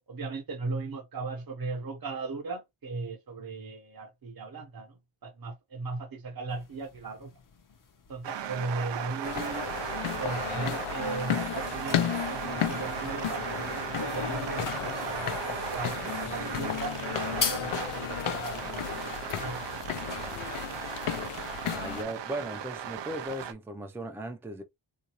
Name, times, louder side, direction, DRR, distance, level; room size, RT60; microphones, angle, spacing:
voice 1, 0.1-7.3 8.1-9.6 10.2-17.0 17.3-19.0 19.4-19.8, right 3 dB, 45° right, 0.9 m, -37 dB
sound 1, 6.5-21.6, left 6 dB, 40° left, 0.6 m, -43 dB
sound 2, 8.2-23.5, right 9 dB, 60° right, 0.5 m, -37 dB
sound 3, 9.2-22.0, left 11 dB, 85° left, 0.5 m, -34 dB
voice 2, 21.7-24.6, right 1 dB, 5° right, 0.5 m, -37 dB
3.8 x 2.5 x 2.9 m
wide cardioid pair, 130°, 49 cm